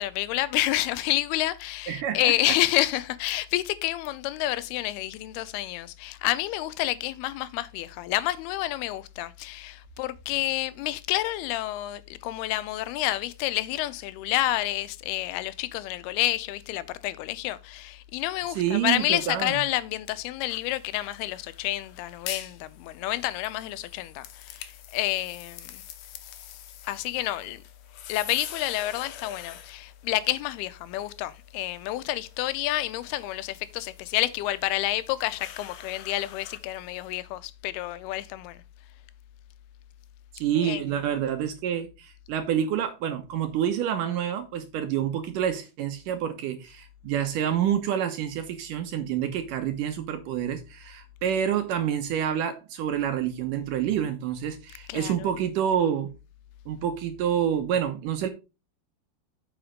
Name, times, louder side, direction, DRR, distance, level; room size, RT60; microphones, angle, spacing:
voice 1, 0.0-25.8 26.9-27.6 28.1-38.6 40.6-40.8 54.9-55.3, left 16 dB, 90° left, 2.6 m, -29 dB
voice 2, 1.9-2.6 18.6-19.6 40.3-56.1 56.7-58.3, right 9 dB, 70° right, 2.1 m, -28 dB
sound 1, 20.5-37.2, left 11 dB, 70° left, 2.0 m, -45 dB
7.9 x 5.0 x 5.1 m
omnidirectional pair, 4.5 m